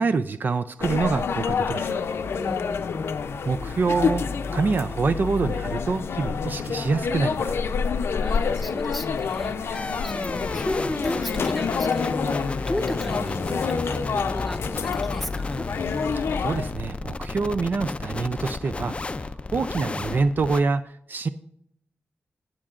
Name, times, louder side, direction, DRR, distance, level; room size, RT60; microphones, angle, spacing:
voice 1, 0.0-2.0 3.5-4.2 4.5-7.6 16.4-21.3, right 4 dB, 50° right, 11 dB, 0.4 m, -26 dB
sound 1, 0.8-16.7, left 5 dB, 85° left, 0.5 m, -28 dB
voice 2, 2.3-2.9 8.2-15.7, left 1 dB, ahead, 4 dB, 0.9 m, -34 dB
sound 2, 9.7-20.6, left 3 dB, 30° left, 0.4 m, -32 dB
17.5 x 7.5 x 2.5 m, 0.73 s
wide cardioid pair, 120°, 4 cm